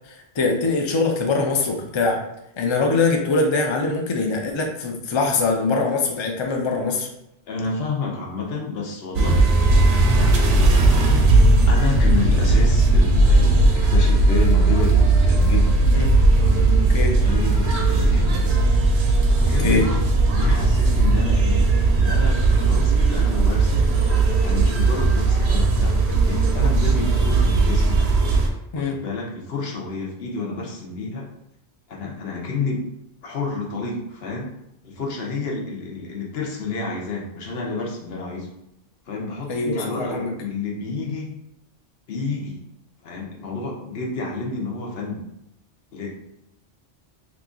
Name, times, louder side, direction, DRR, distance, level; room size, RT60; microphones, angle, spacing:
voice 1, 0.1-2.2 2.6-7.1 15.9-16.1 16.9-17.2 19.6-19.9 28.7-29.0 39.5-40.3, left 3 dB, 40° left, 1 dB, 0.4 m, -22 dB
voice 2, 7.5-9.5 10.1-11.1 11.7-15.8 16.3-16.7 17.2-18.6 19.4-21.7 21.9-23.9 24.4-28.0 28.7-31.3 31.9-32.8 33.2-34.5 34.8-38.5 39.1-41.3 42.1-42.6 43.0-45.2 45.9-46.1, left 3 dB, 70° left, -2 dB, 1.0 m, -30 dB
sound 1, 9.1-28.5, right 2 dB, 80° right, 0.9 m, -17 dB
2.9 x 2.5 x 3.6 m, 0.83 s
omnidirectional pair, 1.1 m